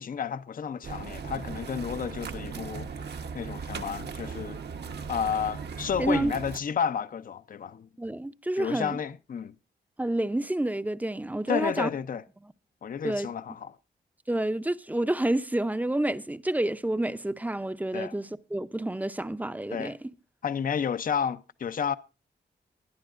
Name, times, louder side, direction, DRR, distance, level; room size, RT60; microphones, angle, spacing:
voice 1, 0.0-2.9 3.3-4.6 5.1-7.9 8.6-9.5 11.5-12.2 12.8-13.7 17.9-18.1 19.7-19.9 20.4-22.0, left 7 dB, 50° left, 0.5 m, -31 dB
sound 1, 0.8-6.6, right 5 dB, 70° right, 1.0 m, -38 dB
voice 2, 6.0-6.3 8.0-9.0 10.0-11.9 12.4-12.5 13.0-13.3 14.3-20.0, right 1 dB, 10° right, 0.5 m, -29 dB
21.0 x 10.5 x 2.5 m
wide cardioid pair, 110°, 18 cm